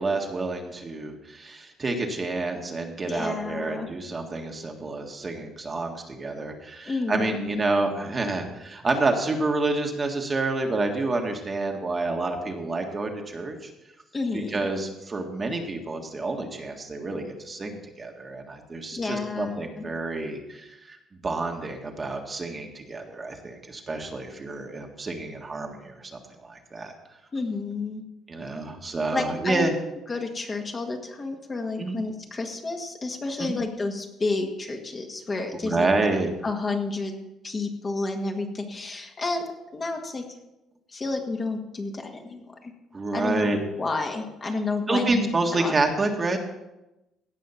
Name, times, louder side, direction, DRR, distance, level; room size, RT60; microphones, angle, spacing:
voice 1, 0.0-13.7 14.3-21.0 21.2-26.9 28.3-29.7 31.8-32.0 33.4-33.6 35.6-36.3 42.9-43.6 44.9-46.4, right 2 dB, 30° right, 3 dB, 1.7 m, -28 dB
voice 2, 3.0-3.9 6.8-7.6 14.1-14.7 18.9-19.8 27.3-28.0 29.1-29.7 30.1-35.9 36.4-37.1 37.4-40.2 40.9-42.7 43.1-45.8, left 3 dB, 30° left, 3 dB, 1.7 m, -30 dB
16.5 x 5.6 x 5.8 m, 0.95 s
cardioid pair, 110°, 0 cm